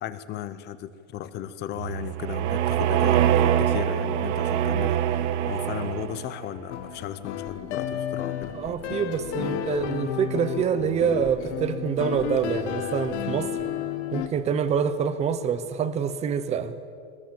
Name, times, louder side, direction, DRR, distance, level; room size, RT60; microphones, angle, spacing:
voice 1, 0.0-8.5, left 11 dB, 30° left, 13 dB, 0.8 m, -36 dB
sound 1, 1.8-6.4, right 10 dB, 85° right, 1.2 m, -24 dB
sound 2, 6.7-14.3, left 8 dB, 80° left, 2.0 m, -32 dB
voice 2, 8.5-13.6 14.1-16.8, right 7 dB, 20° right, 12 dB, 0.8 m, -26 dB
21.0 x 20.5 x 7.8 m, 2.3 s
cardioid pair, 175°, 34 cm